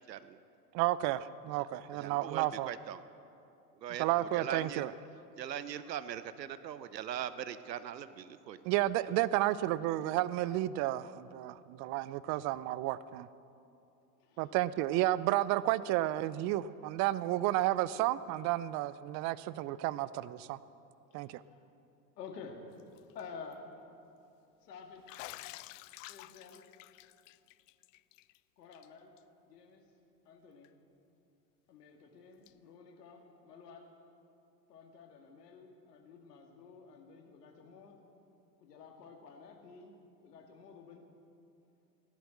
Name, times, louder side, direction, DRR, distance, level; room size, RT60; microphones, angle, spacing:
voice 1, 0.1-0.4 1.9-3.0 3.8-4.9 5.4-8.6, right 10 dB, 80° right, 14 dB, 0.8 m, -40 dB
voice 2, 0.7-2.7 4.0-4.9 8.6-13.3 14.4-20.6 21.1-21.4, right 15 dB, 35° right, 18 dB, 0.5 m, -32 dB
voice 3, 14.2-14.5 21.1-21.7 22.2-22.6 23.1-23.6 24.6-25.3 26.1-26.6 28.6-29.1 29.4-29.8 30.2-30.7 31.7-33.9 34.7-38.0 38.6-39.9 40.2-41.0, left 5 dB, 70° left, 3 dB, 2.3 m, -51 dB
Bathtub (filling or washing), 22.8-23.2 23.5-23.6 25.1-28.4 28.7-28.9 29.2-29.3 30.6-30.7 32.5-32.6, left 18 dB, 50° left, 0.5 m, -50 dB
16.0 x 11.0 x 7.8 m, 2.7 s
figure-of-eight pair, 85°, 49 cm